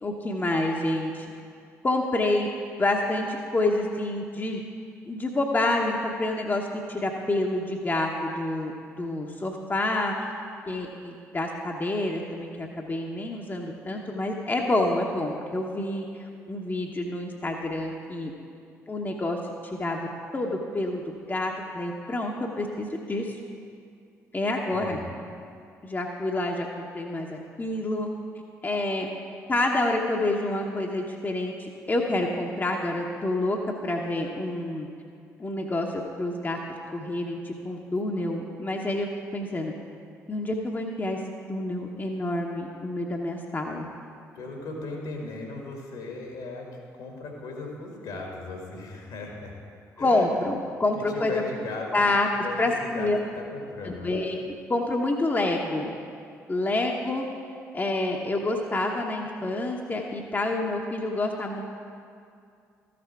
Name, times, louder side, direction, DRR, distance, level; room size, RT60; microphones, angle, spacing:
voice 1, 0.0-1.3 1.8-2.5 2.8-4.6 5.1-8.7 9.0-10.3 10.7-16.0 16.5-18.3 18.9-20.1 20.3-23.4 24.3-25.0 25.8-28.1 28.6-29.1 29.5-33.6 33.8-34.9 35.4-36.6 36.9-39.7 40.3-41.2 41.5-43.9 50.0-51.4 51.9-52.3 52.6-53.2 53.8-55.9 56.5-57.2 57.7-61.6, left 2 dB, 25° left, 0 dB, 1.0 m, -28 dB
voice 2, 24.7-25.2 44.3-46.7 46.9-49.5 50.0-50.2 50.8-52.1 52.4-52.6 52.8-53.1 53.3-54.1, left 3 dB, 65° left, 0 dB, 1.9 m, -37 dB
13.5 x 6.0 x 4.6 m, 2.4 s
figure-of-eight pair, 45°, 8 cm